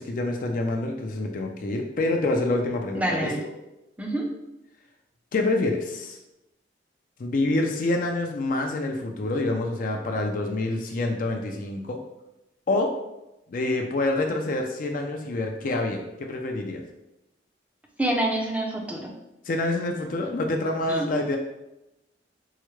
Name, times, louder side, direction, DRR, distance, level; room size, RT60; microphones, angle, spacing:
voice 1, 0.0-3.5 5.3-6.2 7.2-12.0 12.7-12.9 13.5-16.8 19.4-21.4, left 2 dB, 50° left, 3 dB, 0.4 m, -27 dB
voice 2, 2.9-3.4 4.0-4.3 18.0-19.1 20.9-21.1, right 1 dB, 10° right, 0 dB, 0.5 m, -27 dB
4.6 x 2.1 x 3.0 m, 0.92 s
head